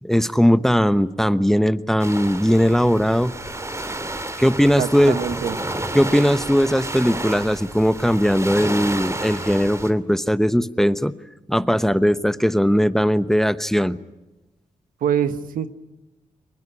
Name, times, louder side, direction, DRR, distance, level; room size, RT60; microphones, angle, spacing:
voice 1, 0.0-3.4 4.4-5.2 5.9-11.1 11.5-14.0, equal, 5° left, 14 dB, 1.0 m, -19 dB
sound 1, 2.0-9.9, right 1 dB, 20° right, 2.7 m, -30 dB
voice 2, 4.8-5.6 15.0-15.7, right 9 dB, 80° right, 12 dB, 1.3 m, -24 dB
22.5 x 21.0 x 9.9 m, 1.1 s
cardioid pair, 60°, 14 cm